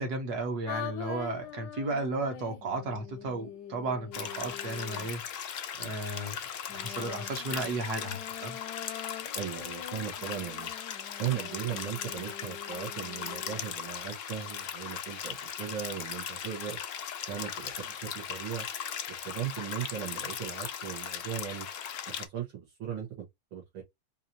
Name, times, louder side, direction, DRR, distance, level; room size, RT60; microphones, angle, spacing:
voice 1, 0.0-6.4 6.7-8.6, right 3 dB, 55° right, 1.6 m, -34 dB
sound 1, 0.7-5.2 6.7-13.7, left 10 dB, 70° left, 1.0 m, -44 dB
sound 2, 4.1-22.3, left 8 dB, 90° left, 0.6 m, -38 dB
voice 2, 9.3-10.7 11.2-16.8 17.3-18.7 19.2-21.7 22.1-23.1 23.5-23.8, right 9 dB, 80° right, 2.3 m, -37 dB
4.8 x 2.8 x 2.7 m
omnidirectional pair, 2.2 m